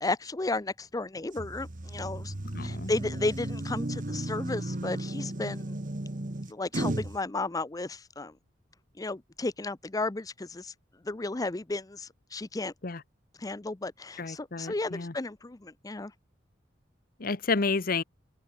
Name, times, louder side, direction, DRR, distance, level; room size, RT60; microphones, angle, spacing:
voice 1, 0.0-2.3 2.6-5.8 6.5-8.3 9.0-10.7 11.0-12.7 13.4-16.1, left 2 dB, 20° left, 0.6 m, -33 dB
sound 1, 1.4-7.2, right 1 dB, 45° right, 1.3 m, -34 dB
voice 2, 2.5-2.9 12.8-13.0 14.2-15.1 17.2-18.0, left 4 dB, 50° left, 1.0 m, -30 dB
head